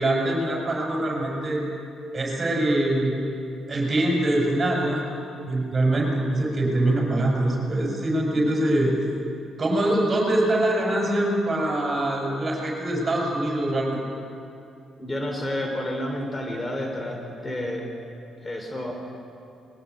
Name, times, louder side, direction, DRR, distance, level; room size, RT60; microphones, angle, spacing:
voice 1, 0.0-1.6 2.1-3.1 3.7-5.0 5.5-8.9 9.6-14.0, right 1 dB, 35° right, 0 dB, 6.2 m, -23 dB
voice 2, 15.0-17.8 18.4-18.9, left 1 dB, 25° left, 2 dB, 3.5 m, -30 dB
21.5 x 17.0 x 8.2 m, 2.6 s
cardioid pair, 90°, 0 cm